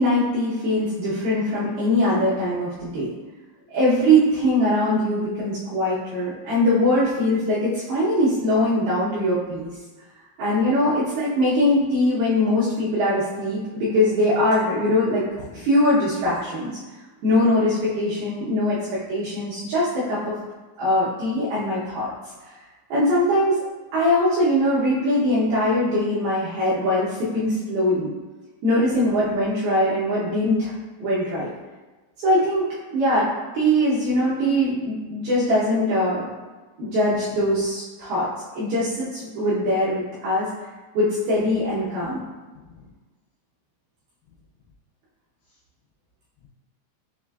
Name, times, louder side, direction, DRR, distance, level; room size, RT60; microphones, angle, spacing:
voice 1, 0.0-3.1 3.7-9.7 10.4-15.3 15.5-16.7 17.2-20.3 20.8-22.1 22.5-22.6 22.9-23.6 23.9-28.1 28.6-30.7 31.0-31.5 32.2-36.3 36.8-38.3 38.5-40.5 40.9-42.2, left 1 dB, 80° right, -10 dB, 2.1 m, -22 dB
voice 2, 2.7-3.1 15.3-15.7 28.9-29.4 42.0-42.9 45.5-45.6 46.4-46.5, left 5 dB, 85° left, -3 dB, 2.4 m, -49 dB
6.9 x 2.5 x 2.3 m, 1.3 s
omnidirectional pair, 5.4 m